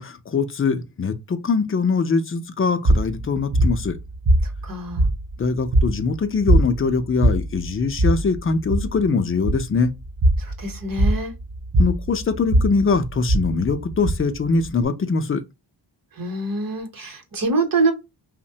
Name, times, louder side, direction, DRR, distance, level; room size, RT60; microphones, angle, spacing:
voice 1, 0.0-3.9 5.4-9.9 11.8-15.4, left 4 dB, 30° left, 0.4 m, -22 dB
sound 1, 2.8-14.8, right 1 dB, 30° right, 0.5 m, -22 dB
voice 2, 4.6-5.0 10.4-11.3 16.2-17.9, right 3 dB, 50° right, 0.9 m, -25 dB
3.0 x 2.1 x 2.7 m
cardioid pair, 80°, 45 cm